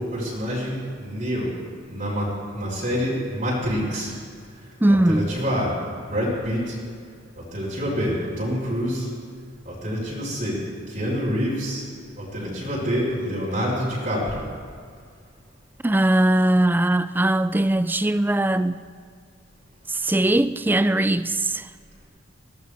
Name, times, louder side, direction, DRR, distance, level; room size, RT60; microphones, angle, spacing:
voice 1, 0.0-1.5 1.9-4.1 4.9-5.7 6.1-6.7 7.4-9.1 9.6-10.6 10.9-11.9 12.2-14.4, equal, 45° right, 4.4 m, -27 dB
voice 2, 4.8-5.4 15.8-18.8 19.9-21.7, right 1 dB, 10° right, 0.3 m, -20 dB
23.0 x 17.0 x 3.5 m
head